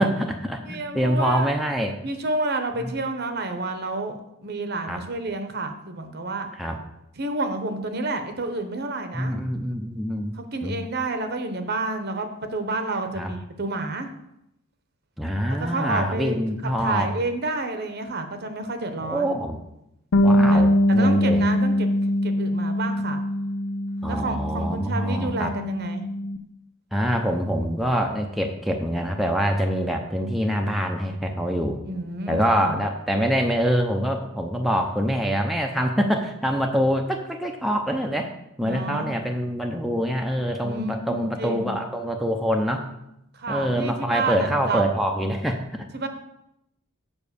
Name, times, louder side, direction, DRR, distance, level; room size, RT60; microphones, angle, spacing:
voice 1, 0.0-2.0 2.8-2.9 4.9-5.0 6.6-6.8 9.1-10.7 13.1-13.3 15.2-17.1 19.0-19.6 20.2-21.4 24.0-25.5 26.9-31.8 32.3-38.3 38.6-42.9 43.5-45.8, equal, ahead, 2 dB, 0.6 m, -25 dB
voice 2, 0.7-1.5 2.0-6.5 7.2-9.4 10.3-14.1 15.6-16.4 16.8-19.4 20.5-21.9 22.2-23.2 24.1-26.1 31.8-32.8 38.6-39.1 40.6-41.8 43.3-44.8 45.9-46.1, right 2 dB, 50° right, 7 dB, 0.9 m, -29 dB
Bass guitar, 20.1-26.4, left 1 dB, 80° left, 0.5 m, -22 dB
7.2 x 5.2 x 6.8 m, 0.83 s
head